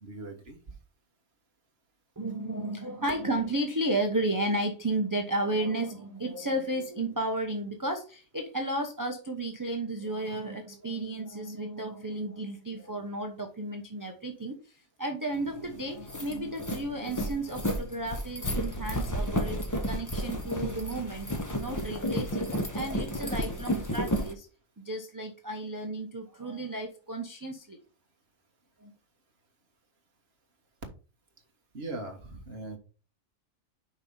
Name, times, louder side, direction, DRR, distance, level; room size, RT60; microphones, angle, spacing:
voice 1, 0.0-0.7 31.7-32.8, right 2 dB, 50° right, 3 dB, 1.7 m, -40 dB
voice 2, 2.2-14.6 15.0-19.6 19.9-21.3 21.6-24.5 24.8-27.8 28.8-28.9, right 1 dB, 15° right, 2 dB, 0.8 m, -33 dB
sound 1, 15.5-15.6 15.9-24.3, equal, 15° left, 0.9 m, -31 dB
5.7 x 4.8 x 5.5 m, 0.36 s
omnidirectional pair, 1.4 m